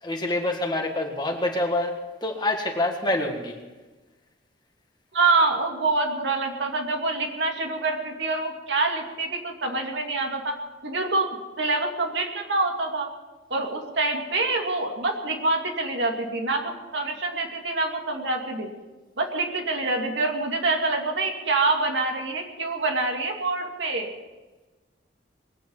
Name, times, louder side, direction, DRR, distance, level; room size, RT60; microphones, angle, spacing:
voice 1, 0.0-3.6, left 1 dB, 25° left, 3 dB, 1.8 m, -26 dB
voice 2, 5.1-10.5 10.8-11.3 11.6-13.1 13.5-18.7 19.2-24.1, right 3 dB, 75° right, 1 dB, 2.7 m, -26 dB
21.5 x 9.2 x 7.3 m, 1.2 s
head